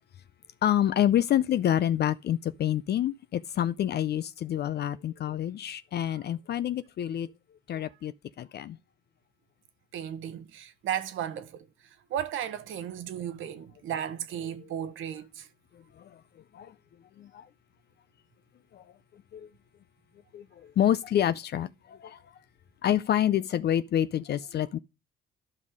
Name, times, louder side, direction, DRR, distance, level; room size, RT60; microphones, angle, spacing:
voice 1, 0.6-7.3 7.7-8.8 16.0-16.1 16.5-16.7 17.2-17.5 18.7-18.8 19.3-19.5 20.3-22.2 22.8-24.8, left 11 dB, 55° left, 0.5 m, -27 dB
voice 2, 9.9-11.7 12.1-15.5, right 10 dB, 80° right, 1.1 m, -35 dB
11.5 x 5.4 x 4.9 m
cardioid pair, 90°, 20 cm